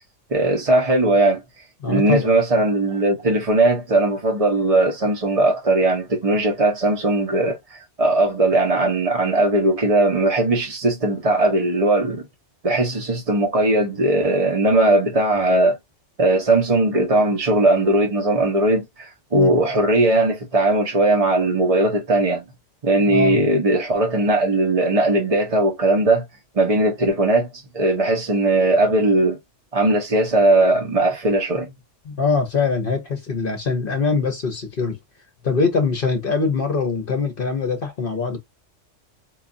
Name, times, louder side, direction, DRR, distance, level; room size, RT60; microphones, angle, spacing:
voice 1, 0.3-1.4 1.9-12.2 12.6-15.8 16.2-22.4 22.8-26.2 26.5-27.5 27.7-29.4 29.7-31.7, right 2 dB, 35° right, 0.8 m, -19 dB
voice 2, 1.8-2.3 19.3-19.6 23.1-23.5 32.1-35.0 35.4-38.4, left 4 dB, 50° left, 0.9 m, -23 dB
4.7 x 2.4 x 2.5 m
omnidirectional pair, 1.3 m